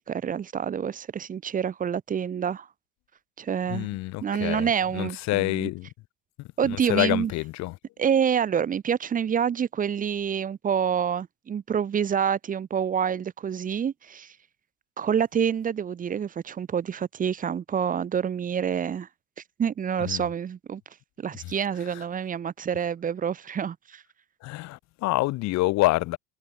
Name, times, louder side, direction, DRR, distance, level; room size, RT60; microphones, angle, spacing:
voice 1, 0.0-2.7 3.4-5.7 6.6-7.3 8.0-14.3 15.0-19.1 19.6-20.8 21.2-24.0, right 8 dB, 25° right, 3.5 m, -27 dB
voice 2, 3.7-5.9 6.4-7.7 20.1-20.3 21.4-21.5 21.9-22.0 24.4-26.2, left 19 dB, 50° left, 7.0 m, -27 dB
cardioid pair, 165°, 34 cm